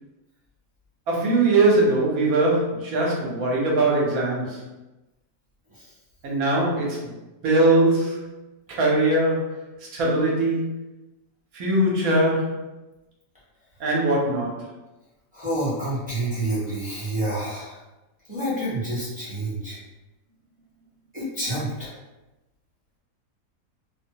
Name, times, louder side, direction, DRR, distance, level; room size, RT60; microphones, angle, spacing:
voice 1, 1.1-4.6 6.2-7.1 7.4-8.3 8.7-10.8 11.5-12.7 13.8-14.6, right 2 dB, 65° right, -3 dB, 1.1 m, -21 dB
voice 2, 15.3-17.8 18.3-19.8 21.1-21.9, right 1 dB, 5° right, -10 dB, 0.8 m, -28 dB
2.7 x 2.1 x 2.7 m, 1.0 s
omnidirectional pair, 1.8 m